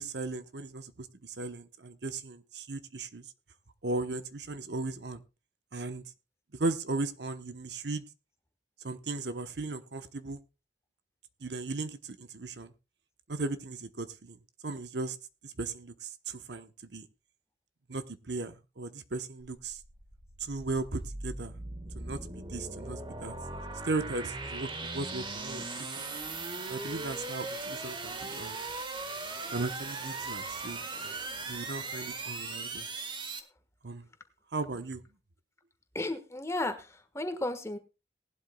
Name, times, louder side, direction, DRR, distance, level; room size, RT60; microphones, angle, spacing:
voice 1, 0.0-3.2 3.8-5.2 5.7-6.0 6.5-8.0 8.8-10.4 11.4-12.7 13.3-14.4 14.6-15.2 15.4-17.1 17.9-19.8 20.4-21.6 21.9-22.2 22.5-23.3 23.8-25.9 26.7-28.7 29.4-31.2 31.5-32.9 33.8-34.1 34.5-35.0, right 3 dB, 70° right, 11 dB, 1.0 m, -37 dB
sound 1, 19.4-33.4, right 3 dB, 30° right, 1.5 m, -39 dB
voice 2, 35.9-37.8, left 2 dB, 15° left, 8 dB, 1.4 m, -34 dB
19.0 x 12.0 x 2.3 m, 0.28 s
head